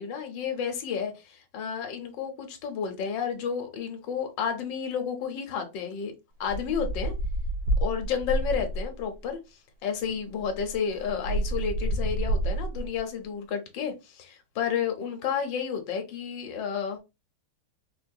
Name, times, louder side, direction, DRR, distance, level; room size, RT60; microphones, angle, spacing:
voice 1, 0.0-6.1 6.4-7.1 7.8-9.4 9.8-17.0, left 7 dB, 80° left, 1.5 m, -31 dB
sound 1, 6.4-9.0 10.0-10.1 10.4-13.0, right 1 dB, 75° right, 1.5 m, -29 dB
4.5 x 2.7 x 2.2 m
omnidirectional pair, 1.9 m